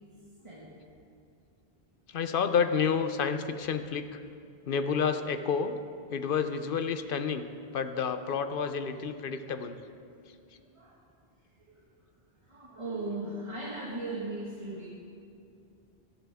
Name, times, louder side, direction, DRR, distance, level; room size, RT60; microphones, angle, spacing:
voice 1, 2.1-4.2 4.7-5.8 6.1-7.5 7.7-9.8, left 6 dB, 60° left, 9 dB, 0.9 m, -29 dB
voice 2, 12.5-14.9, right 2 dB, 30° right, -6 dB, 1.8 m, -37 dB
17.5 x 13.0 x 3.5 m, 2.4 s
omnidirectional pair, 1.0 m